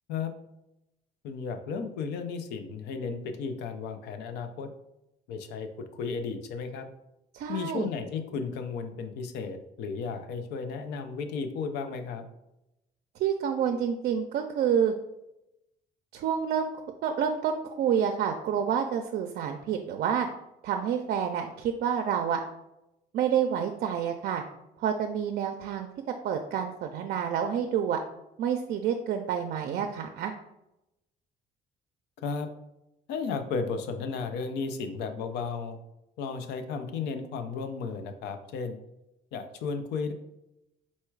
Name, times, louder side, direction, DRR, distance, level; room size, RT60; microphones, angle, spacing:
voice 1, 1.2-4.7 5.3-6.9 7.5-12.3 32.2-32.5 33.1-35.8 36.2-38.8 39.3-40.1, left 5 dB, 85° left, 7 dB, 0.6 m, -34 dB
voice 2, 7.3-7.9 13.2-14.9 16.1-16.7 17.0-20.3 20.6-22.4 23.1-24.4 24.8-25.9 26.2-28.0 28.4-30.3, right 8 dB, 60° right, 5 dB, 0.4 m, -28 dB
4.2 x 2.3 x 4.5 m, 0.88 s
cardioid pair, 110°, 17 cm